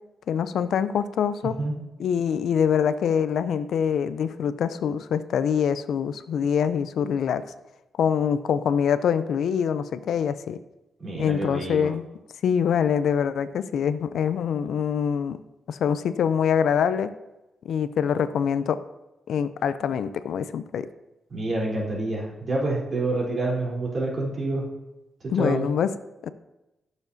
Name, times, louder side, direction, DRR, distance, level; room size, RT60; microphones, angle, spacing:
voice 1, 0.3-1.5 2.0-7.4 8.0-10.6 11.2-12.1 12.4-15.4 15.7-17.1 17.7-18.8 19.3-20.9 25.3-25.9 26.2-26.3, left 7 dB, 80° left, 13 dB, 0.5 m, -24 dB
voice 2, 11.0-11.9 21.3-24.6 25.2-25.7, right 2 dB, 50° right, -5 dB, 3.6 m, -27 dB
14.5 x 7.1 x 2.8 m, 1.0 s
cardioid pair, 90°, 0 cm